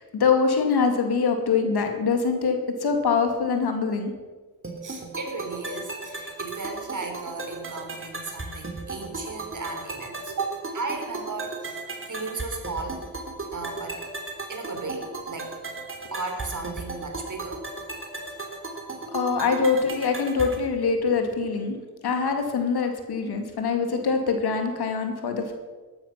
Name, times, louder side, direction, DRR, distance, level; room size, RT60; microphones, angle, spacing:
voice 1, 0.0-4.1 19.1-21.8 22.0-25.5, left 5 dB, 75° left, 5 dB, 2.3 m, -24 dB
sound 1, 4.6-20.6, right 3 dB, 30° right, 3.1 m, -36 dB
voice 2, 4.8-11.8 12.1-13.0 13.5-14.0 14.5-15.6 16.1-17.6, right 3 dB, 50° right, 4 dB, 3.5 m, -35 dB
13.5 x 12.0 x 5.8 m, 1.4 s
cardioid pair, 55°, 39 cm